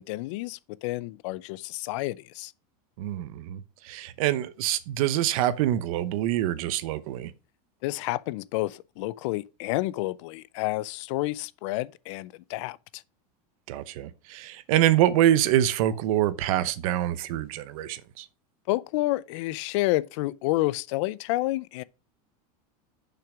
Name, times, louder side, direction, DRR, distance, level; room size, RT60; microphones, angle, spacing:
voice 1, 0.0-2.5 7.8-13.0 18.7-21.8, left 18 dB, 50° left, 0.4 m, -29 dB
voice 2, 3.0-7.3 13.7-18.3, right 12 dB, 60° right, 0.8 m, -25 dB
7.0 x 5.8 x 5.0 m
supercardioid pair, 170°, 20 cm